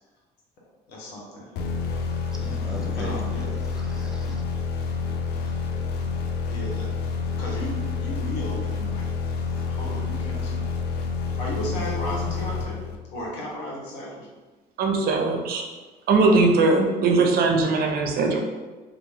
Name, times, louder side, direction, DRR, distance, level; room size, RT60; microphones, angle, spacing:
voice 1, 0.9-1.5 3.0-3.5 5.4-5.5 6.5-6.9 7.4-9.1 9.4-10.7 11.3-12.8 13.1-14.3 16.2-16.4, equal, 90° left, -3 dB, 0.8 m, -35 dB
sound 1, 1.6-13.3, left 5 dB, 70° left, 0.4 m, -28 dB
voice 2, 2.3-4.4, left 1 dB, 5° right, -1 dB, 0.4 m, -39 dB
voice 3, 14.8-15.6 16.1-18.4, right 3 dB, 65° right, 2 dB, 0.5 m, -20 dB
2.5 x 2.2 x 3.1 m, 1.3 s
cardioid pair, 110°, 17 cm